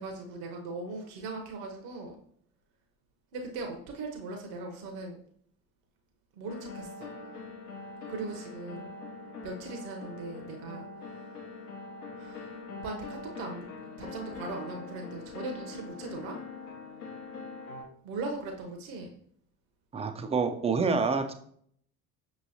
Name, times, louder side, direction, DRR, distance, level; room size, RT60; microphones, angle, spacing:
voice 1, 0.0-2.2 3.3-5.2 6.4-7.1 8.1-8.9 9.2-10.9 11.1-11.2 12.2-12.6 12.8-13.7 14.0-16.4 18.0-19.1, right 3 dB, 55° right, 2 dB, 0.9 m, -39 dB
sound 1, 6.5-17.8, left 4 dB, 80° left, 0.7 m, -43 dB
voice 2, 19.9-21.3, right 4 dB, 15° right, 7 dB, 0.3 m, -27 dB
5.9 x 3.0 x 2.7 m, 0.64 s
figure-of-eight pair, 55°, 44 cm